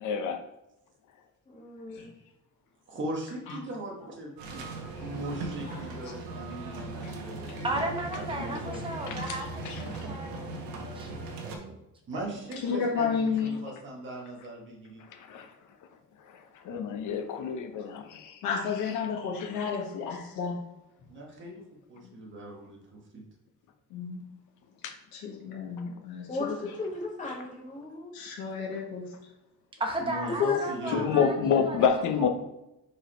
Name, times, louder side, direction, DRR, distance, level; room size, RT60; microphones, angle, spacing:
voice 1, 0.0-0.4 7.0-7.1 9.1-9.4 9.9-10.0 15.1-15.5 16.3-18.4 19.4-19.7 24.8-24.9 25.8-25.9 30.9-32.3, left 6 dB, 60° left, 5 dB, 0.9 m, -28 dB
voice 2, 1.5-2.1 26.3-28.1, left 2 dB, 20° left, -3 dB, 1.7 m, -37 dB
voice 3, 2.9-4.6 5.0-7.9 8.1-8.8 12.1-15.0 21.1-23.2 30.0-31.1, right 1 dB, 35° right, -2 dB, 1.4 m, -39 dB
sound 1, 4.4-11.6, right 2 dB, 85° right, 1.3 m, -38 dB
voice 4, 7.6-9.5 9.8-11.2 11.4-11.7 29.8-31.9 32.2-32.3, right 1 dB, 15° right, 2 dB, 0.9 m, -35 dB
voice 5, 12.6-13.6 18.4-20.6 23.9-24.2 25.1-26.3 28.1-29.1 30.4-30.6, left 6 dB, 85° left, -2 dB, 1.7 m, -31 dB
4.8 x 4.8 x 4.4 m, 0.91 s
cardioid pair, 175°, 35 cm